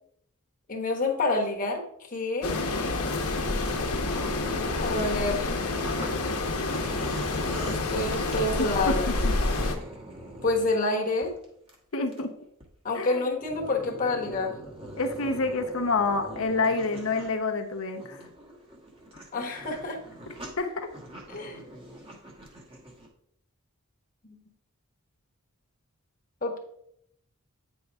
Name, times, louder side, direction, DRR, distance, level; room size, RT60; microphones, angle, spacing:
voice 1, 0.7-2.6 4.8-5.5 7.6-9.0 10.4-11.3 12.8-14.6 19.3-20.0 21.3-21.6 24.2-24.4 26.4-26.6, left 2 dB, 35° left, 0 dB, 1.3 m, -28 dB
sound 1, 2.4-9.8, left 2 dB, 85° left, 1.1 m, -28 dB
sound 2, 3.7-6.1 6.4-10.8 11.2-11.7 12.1-12.2 12.6-12.7 13.3-17.4 17.8-23.1, right 1 dB, 25° right, 1.3 m, -43 dB
voice 2, 11.9-12.3 12.9-13.2 15.0-18.2 20.6-20.9, left 3 dB, 65° left, 4 dB, 0.8 m, -27 dB
9.3 x 5.4 x 3.5 m, 0.73 s
head